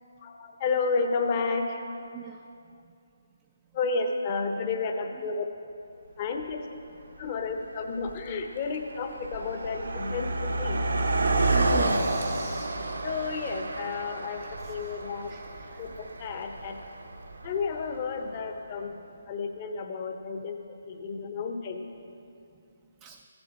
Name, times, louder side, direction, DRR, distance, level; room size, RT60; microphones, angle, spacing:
voice 1, 0.2-2.0 3.7-5.5 6.2-6.8 7.2-10.8 13.0-15.3 15.8-16.8 17.4-18.9 19.3-20.6 20.8-21.8, left 4 dB, 35° left, 4 dB, 0.9 m, -31 dB
voice 2, 2.1-2.4 11.5-12.8 14.6-15.0 15.3-15.8 23.0-23.2, right 9 dB, 20° right, 4 dB, 0.4 m, -42 dB
Car passing by, 6.4-6.5 7.3-7.5 7.8-18.2, right 2 dB, 80° right, 0.9 m, -30 dB
15.0 x 6.7 x 4.1 m, 2.6 s
figure-of-eight pair, 145°, 0 cm